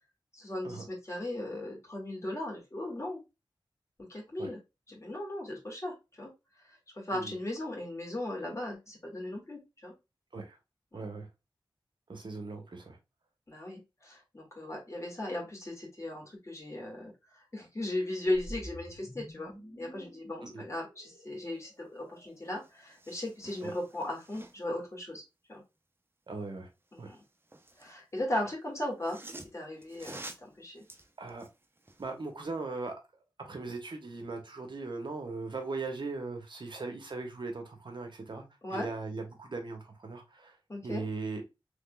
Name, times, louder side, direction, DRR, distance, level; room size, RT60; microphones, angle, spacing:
voice 1, 0.3-3.2 4.1-4.6 4.9-6.3 6.7-9.9 10.9-11.0 13.5-25.2 25.5-25.6 26.9-27.2 27.8-29.2 29.5-30.8 38.6-38.9 40.7-41.0, left 1 dB, 35° left, -1 dB, 2.0 m, -37 dB
voice 2, 10.9-11.3 12.1-13.0 20.4-20.6 23.6-23.7 26.3-26.7 27.0-27.1 30.0-30.2 31.2-31.4 32.0-32.9 33.5-38.4 38.7-40.6 40.8-41.4, right 3 dB, 65° right, 4 dB, 1.0 m, -39 dB
sound 1, 18.4-22.6, equal, 15° left, 2.0 m, -49 dB
sound 2, 22.2-22.3 22.5-24.8 26.9-28.0 28.8-32.1 32.5-32.6, right 2 dB, 25° right, 0.6 m, -50 dB
3.5 x 3.3 x 2.2 m, 0.25 s
cardioid pair, 45°, 9 cm